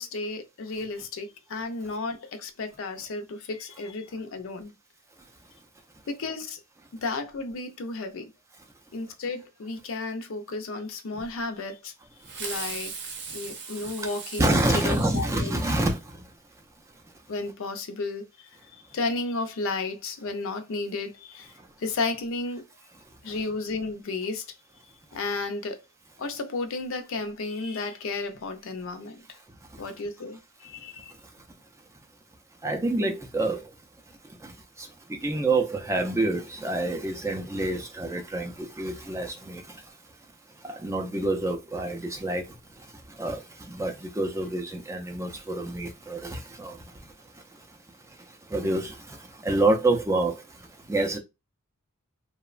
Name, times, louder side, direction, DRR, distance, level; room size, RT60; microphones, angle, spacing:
voice 1, 0.0-4.7 6.1-6.6 7.0-8.3 8.9-11.9 12.4-12.9 13.3-15.6 17.3-21.5 21.8-22.6 23.2-24.4 25.1-25.8 26.2-29.2 29.8-31.1, left 3 dB, 65° left, 0.5 m, -33 dB
Fireworks, 12.2-16.1, right 5 dB, 55° right, 0.6 m, -38 dB
voice 2, 14.4-16.3 16.9-17.0 21.6-21.7 23.3-23.4 29.7-30.0 31.2-31.4 32.6-33.7 34.1-40.0 40.5-47.8 48.1-51.2, right 2 dB, 15° right, 0.3 m, -28 dB
2.8 x 2.1 x 2.4 m
head